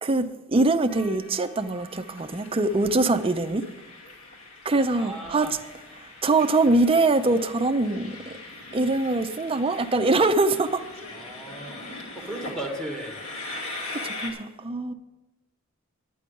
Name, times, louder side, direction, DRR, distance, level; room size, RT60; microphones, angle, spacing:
voice 1, 0.0-3.6 4.6-5.5 6.0-8.4 8.7-10.8 13.9-14.9, right 2 dB, 25° right, 0.6 m, -23 dB
Train, 0.9-14.3, left 2 dB, 75° left, 2.5 m, -41 dB
voice 2, 4.9-5.5 11.1-13.2, right 1 dB, 5° left, 1.7 m, -36 dB
11.0 x 9.3 x 5.3 m
head